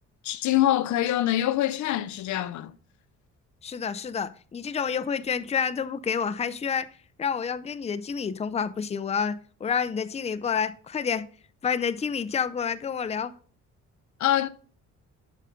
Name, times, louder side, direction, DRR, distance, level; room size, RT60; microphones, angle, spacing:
voice 1, 0.2-2.7 14.2-14.5, left 13 dB, 70° left, 0.5 m, -24 dB
voice 2, 3.6-6.9 7.2-11.3 11.6-13.3, left 6 dB, 20° left, 0.5 m, -29 dB
8.4 x 5.4 x 3.7 m
cardioid pair, 90°, 30 cm